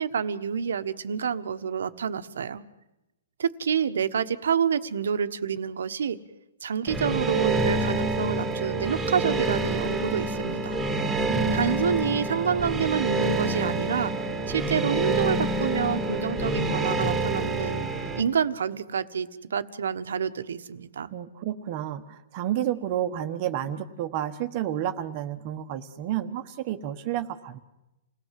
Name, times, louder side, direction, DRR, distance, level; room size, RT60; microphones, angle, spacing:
voice 1, 0.0-2.6 3.4-6.2 6.6-10.8 11.5-14.1 14.5-17.9 18.2-21.1, right 7 dB, 80° right, 11 dB, 1.3 m, -28 dB
sound 1, 6.9-18.2, right 2 dB, 5° right, 2.0 m, -27 dB
voice 2, 11.0-12.0 21.1-27.6, right 11 dB, 35° right, 8 dB, 1.3 m, -31 dB
28.5 x 17.5 x 7.7 m, 0.95 s
hypercardioid pair, 160°, 0 cm